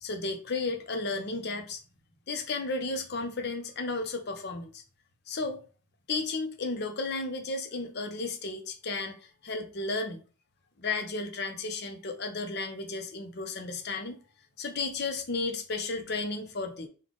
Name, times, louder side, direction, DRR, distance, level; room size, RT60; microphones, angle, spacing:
voice 1, 0.0-1.8 2.3-4.8 5.3-5.6 6.1-10.2 10.8-14.2 14.6-16.9, left 3 dB, 50° left, 5 dB, 0.6 m, -33 dB
3.5 x 2.3 x 3.7 m, 0.38 s
head